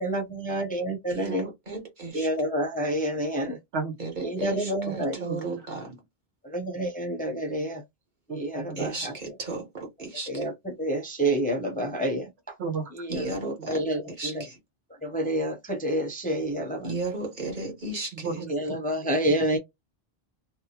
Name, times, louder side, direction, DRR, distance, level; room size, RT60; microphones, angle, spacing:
voice 1, 0.0-1.5 2.1-3.6 4.2-5.2 6.4-7.8 8.3-9.1 10.3-12.5 13.0-13.3 13.7-14.4 15.0-16.9 18.5-19.6, right 1 dB, 10° left, 0.5 m, -28 dB
voice 2, 1.1-2.3 4.0-5.9 8.8-10.5 13.1-13.8 14.1-14.6 16.8-18.3, right 3 dB, 50° right, 1.3 m, -35 dB
voice 3, 3.4-3.9 4.9-6.0 8.3-8.9 12.6-13.2 18.1-18.8, right 4 dB, 85° right, 1.1 m, -35 dB
2.7 x 2.2 x 2.8 m
omnidirectional pair, 1.0 m